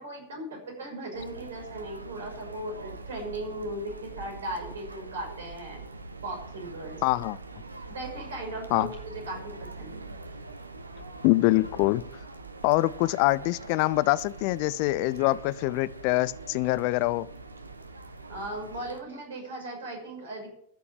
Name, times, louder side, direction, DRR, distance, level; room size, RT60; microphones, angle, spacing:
voice 1, 0.0-5.8 6.2-7.0 7.9-10.0 18.3-20.5, right 1 dB, 65° right, 5.8 m, -37 dB
sound 1, 1.1-19.0, right 3 dB, 80° right, 1.1 m, -43 dB
voice 2, 7.0-7.4 8.7-8.9 11.2-12.1 12.6-17.3, left 19 dB, 45° left, 0.4 m, -24 dB
13.5 x 6.9 x 7.6 m
figure-of-eight pair, 90°, 0 cm